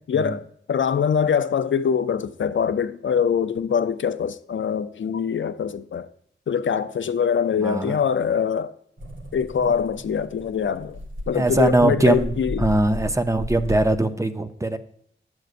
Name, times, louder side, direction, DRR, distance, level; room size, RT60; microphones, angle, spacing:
voice 1, 0.1-6.1 6.5-8.7 9.3-11.0 11.3-12.6, left 7 dB, 75° left, 0.5 m, -23 dB
voice 2, 7.6-7.9 11.3-14.8, right 2 dB, 15° right, 0.6 m, -21 dB
sound 1, 9.0-14.0, left 1 dB, 90° right, 1.7 m, -35 dB
10.5 x 7.8 x 2.5 m
wide cardioid pair, 80°, 20 cm